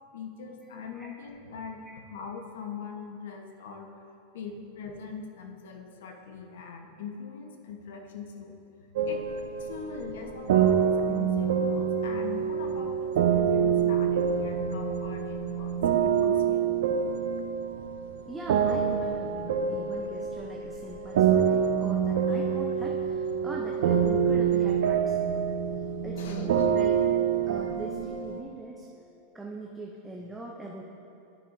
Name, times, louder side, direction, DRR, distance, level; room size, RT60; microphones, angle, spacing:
voice 1, 0.1-4.1 4.3-8.5 9.1-9.2 9.6-16.7 26.1-26.6, left 5 dB, 80° left, 3 dB, 0.9 m, -41 dB
sound 1, 9.0-28.4, right 7 dB, 75° right, 0.5 m, -26 dB
voice 2, 18.3-25.5 26.0-26.9 27.5-28.9 29.3-30.8, right 2 dB, 5° right, -2 dB, 0.5 m, -41 dB
13.0 x 5.5 x 2.6 m, 2.7 s
supercardioid pair, 165°, 0 cm